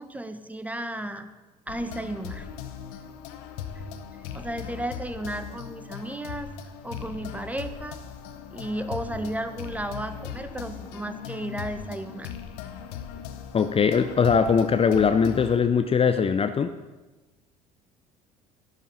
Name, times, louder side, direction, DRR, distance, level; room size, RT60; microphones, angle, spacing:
voice 1, 0.0-1.3 1.7-2.5 3.7-3.8 4.3-6.5 6.8-8.0 8.5-12.3, right 1 dB, 5° right, 9 dB, 1.1 m, -34 dB
sound 1, 1.7-15.6, left 8 dB, 70° left, 1.0 m, -39 dB
voice 2, 13.5-16.7, left 6 dB, 30° left, 9 dB, 0.6 m, -21 dB
12.0 x 9.9 x 5.5 m, 1.2 s
hypercardioid pair, 60°, 20 cm